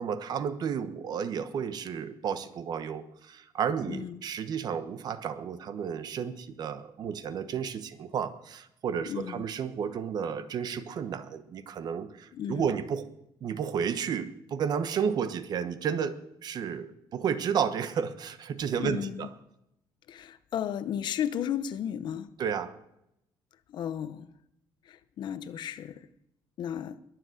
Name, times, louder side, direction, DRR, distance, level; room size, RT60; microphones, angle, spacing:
voice 1, 0.0-13.0 13.4-19.3 22.4-22.7, right 7 dB, 50° right, 1.2 m, -32 dB
voice 2, 3.9-4.2 9.1-9.4 12.3-12.7 18.7-19.3 20.1-22.3 23.7-24.3 24.9-26.1 26.6-27.0, left 9 dB, 55° left, 0.9 m, -34 dB
21.5 x 7.8 x 8.0 m
cardioid pair, 150°, 9 cm